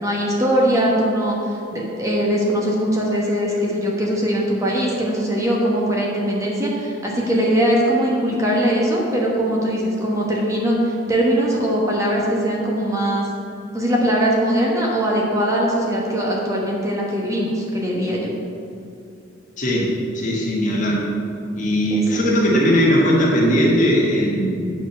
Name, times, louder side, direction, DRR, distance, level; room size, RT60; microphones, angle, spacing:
voice 1, 0.0-13.3 13.7-18.3 21.9-22.2, equal, 15° right, -3 dB, 1.2 m, -21 dB
voice 2, 19.6-21.1 21.6-24.7, equal, 45° left, -4 dB, 1.6 m, -19 dB
9.1 x 4.4 x 6.6 m, 2.6 s
head